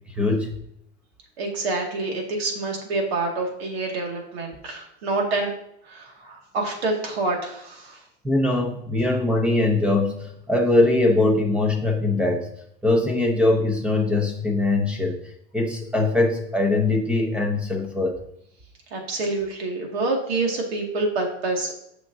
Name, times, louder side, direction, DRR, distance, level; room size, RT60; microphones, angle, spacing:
voice 1, 0.1-0.5 8.2-12.5 12.8-15.2 15.5-18.1, left 2 dB, 5° right, 2 dB, 0.7 m, -21 dB
voice 2, 1.4-5.5 5.9-8.0 18.9-21.7, right 2 dB, 70° right, 1 dB, 2.2 m, -27 dB
8.4 x 6.1 x 2.7 m, 0.73 s
supercardioid pair, 155°, 32 cm